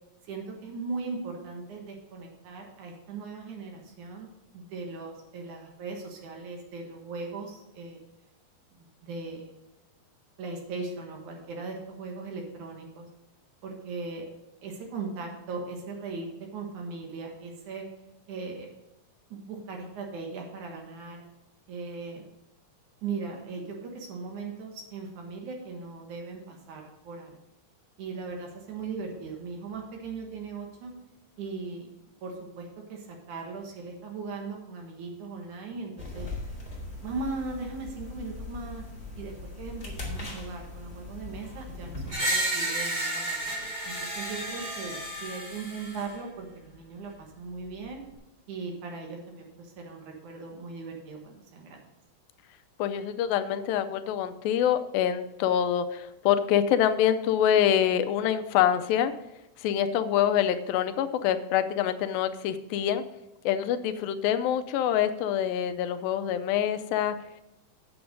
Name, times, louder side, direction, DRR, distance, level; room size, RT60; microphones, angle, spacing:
voice 1, 0.2-4.3 4.5-8.0 8.7-9.5 10.4-13.1 13.6-14.3 14.6-17.9 18.3-18.7 19.3-21.2 21.7-22.3 23.0-27.4 28.0-30.9 31.4-31.9 32.2-36.3 37.0-38.8 39.2-48.0 48.5-51.8, right 4 dB, 65° right, 1 dB, 2.7 m, -38 dB
sound 1, 36.0-42.1, left 2 dB, 15° left, 1.9 m, -40 dB
Screech, 42.1-46.1, right 1 dB, 30° right, 4.2 m, -31 dB
voice 2, 52.8-59.1 59.6-63.0 63.5-67.2, left 10 dB, 85° left, 9 dB, 2.4 m, -25 dB
8.8 x 7.0 x 5.2 m, 0.92 s
omnidirectional pair, 4.0 m